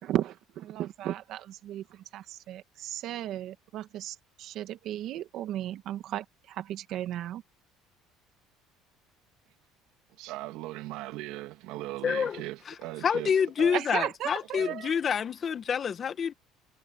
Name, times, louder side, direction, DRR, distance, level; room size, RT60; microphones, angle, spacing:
voice 1, 0.0-7.4 13.7-15.0, right 12 dB, 55° right, 1.9 m, -35 dB
voice 2, 10.2-13.3 13.6-13.8 14.6-14.8, right 17 dB, 75° right, 2.6 m, -39 dB
voice 3, 12.0-12.7 13.0-16.3, left 7 dB, 35° left, 1.6 m, -28 dB
cardioid pair, 135°, 0 cm